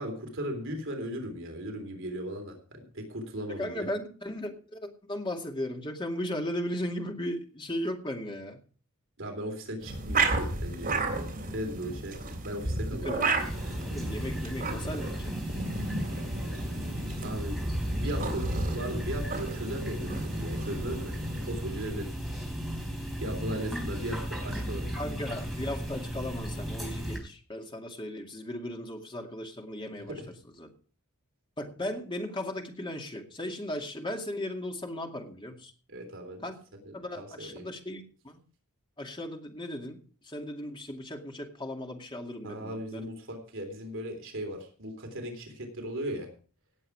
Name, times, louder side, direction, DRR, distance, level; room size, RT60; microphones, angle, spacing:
voice 1, 0.0-3.9 9.2-11.1 11.5-13.5 17.2-17.6 17.9-21.2 21.5-22.1 23.2-24.9 30.0-30.3 35.9-36.4 36.7-37.7 42.4-46.3, right 1 dB, 55° right, 4 dB, 3.4 m, -37 dB
voice 2, 3.6-8.6 13.0-13.3 13.8-15.1 25.0-30.1 30.6-30.7 31.6-35.7 36.4-36.5 36.9-38.4 39.0-40.0 40.2-43.1, left 1 dB, 20° left, 2 dB, 2.3 m, -36 dB
sound 1, 9.8-21.6, right 3 dB, 40° right, 3.5 m, -33 dB
sound 2, 13.4-27.2, equal, ahead, 4.0 m, -35 dB
18.0 x 7.8 x 4.7 m, 0.41 s
head